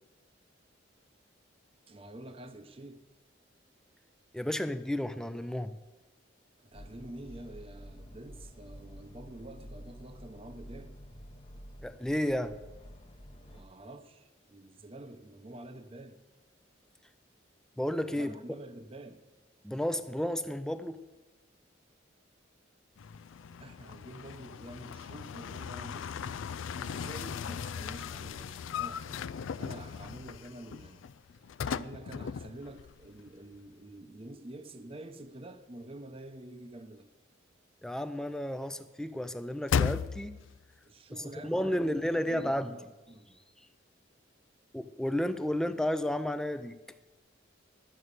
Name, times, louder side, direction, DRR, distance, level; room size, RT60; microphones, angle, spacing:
voice 1, 1.9-3.0 6.6-10.9 13.5-16.2 18.1-19.2 23.6-26.4 26.8-29.3 29.6-31.0 31.6-37.1 40.9-43.4, right 1 dB, 30° right, 0.7 m, -48 dB
voice 2, 4.3-5.8 11.8-12.6 17.8-18.3 19.6-21.0 37.8-40.4 41.4-42.8 44.7-46.8, left 1 dB, 5° left, 0.4 m, -32 dB
sound 1, 6.7-13.6, equal, 30° left, 0.9 m, -49 dB
sound 2, 23.0-33.3 33.5-33.6 39.7-40.6, left 7 dB, 85° left, 0.4 m, -37 dB
12.5 x 6.4 x 8.1 m
head